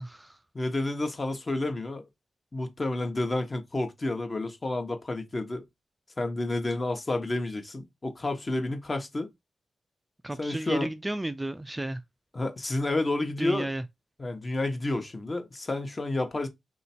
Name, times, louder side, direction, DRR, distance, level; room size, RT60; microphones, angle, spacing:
voice 1, 0.0-0.4 10.2-12.0 13.4-13.8, right 1 dB, 15° right, 0.4 m, -32 dB
voice 2, 0.5-2.1 2.5-5.6 6.2-9.3 10.4-10.9 12.3-13.7 14.2-16.5, left 2 dB, 35° left, 1.0 m, -30 dB
3.3 x 2.9 x 4.2 m
cardioid pair, 60°, 0 cm